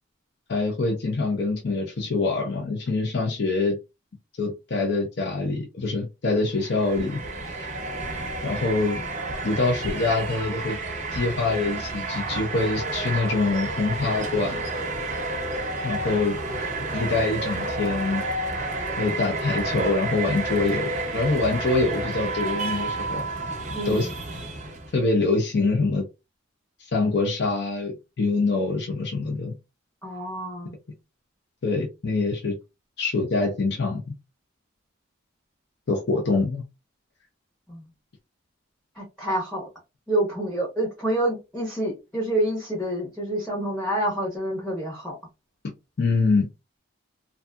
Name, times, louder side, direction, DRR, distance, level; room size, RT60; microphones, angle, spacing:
voice 1, 0.5-3.8 4.4-7.7 8.4-9.0 9.4-10.8 11.1-14.6 15.8-16.4 16.9-18.2 19.0-23.2 23.9-24.1 24.9-26.1 26.9-29.5 31.6-32.6 33.0-34.1 35.9-36.6 46.0-46.5, left 3 dB, 55° left, 0.5 m, -25 dB
sound 1, 6.5-25.0, right 2 dB, 35° right, 0.6 m, -30 dB
voice 2, 23.7-24.1 30.0-30.7 37.7-37.8 39.0-39.7 40.1-45.2, right 1 dB, 5° left, 0.8 m, -27 dB
2.6 x 2.3 x 2.3 m
head